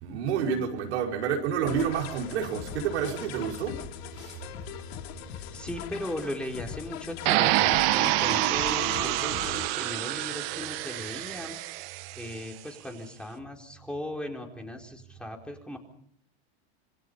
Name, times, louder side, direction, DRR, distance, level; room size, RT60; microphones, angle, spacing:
voice 1, 0.0-3.8 4.2-4.4, right 7 dB, 80° right, 5.5 m, -29 dB
sound 1, 1.7-9.7, left 11 dB, 65° left, 3.1 m, -40 dB
voice 2, 5.3-11.5 12.2-15.8, left 1 dB, 5° left, 4.4 m, -38 dB
sound 2, 7.3-12.3, right 17 dB, 60° right, 1.5 m, -27 dB
27.0 x 24.0 x 5.5 m
supercardioid pair, 125°, 33 cm